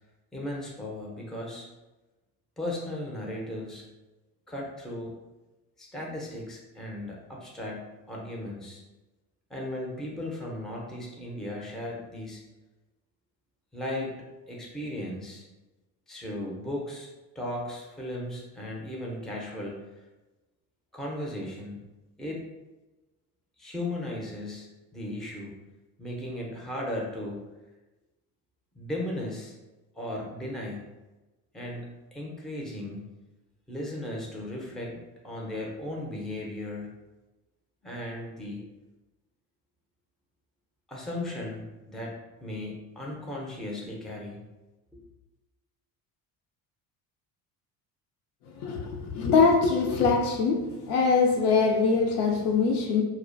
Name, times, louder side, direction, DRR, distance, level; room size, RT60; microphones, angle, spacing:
voice 1, 0.3-1.7 2.6-3.8 4.5-5.1 5.8-8.8 9.5-12.4 13.7-15.5 16.1-17.1 17.3-19.8 20.9-21.8 22.2-22.4 23.6-25.6 26.0-27.4 28.7-29.5 29.9-30.9 31.5-33.1 33.7-37.0 37.8-38.6 40.9-44.4 44.9-45.0, left 1 dB, ahead, -2 dB, 0.5 m, -36 dB
voice 2, 48.5-53.0, left 4 dB, 70° left, 1 dB, 0.6 m, -23 dB
2.4 x 2.1 x 2.5 m, 1.1 s
supercardioid pair, 80°, 43 cm